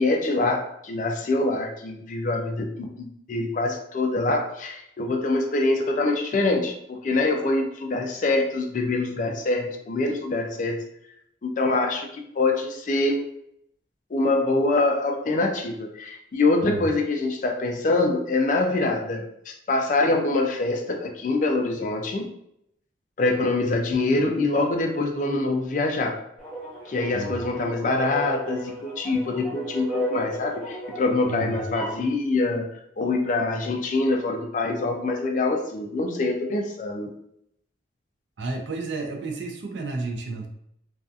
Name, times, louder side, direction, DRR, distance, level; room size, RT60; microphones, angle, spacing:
voice 1, 0.0-10.8 11.4-13.2 14.1-22.3 23.2-26.2 26.9-32.7 33.0-37.1, left 2 dB, 45° left, 3 dB, 0.4 m, -25 dB
sound 1, 26.4-32.0, right 1 dB, ahead, 0.8 m, -34 dB
voice 2, 27.1-27.6 31.2-31.6 38.4-40.5, right 3 dB, 75° right, 3 dB, 0.5 m, -32 dB
2.6 x 2.3 x 2.4 m, 0.74 s
head